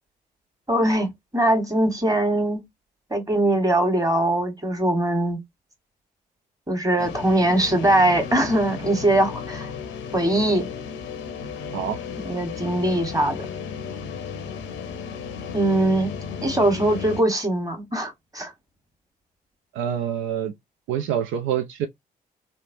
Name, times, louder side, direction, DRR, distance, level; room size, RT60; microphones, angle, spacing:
voice 1, 0.7-2.6 3.1-5.4 6.7-9.7 10.1-10.7 12.2-13.5 15.5-16.1 16.4-18.5, right 1 dB, 15° right, 1.4 m, -21 dB
sound 1, 7.0-17.2, left 6 dB, 75° left, 0.6 m, -34 dB
voice 2, 19.7-20.5 20.9-21.9, right 9 dB, 75° right, 0.4 m, -26 dB
3.1 x 2.1 x 2.6 m
hypercardioid pair, 45°, 20 cm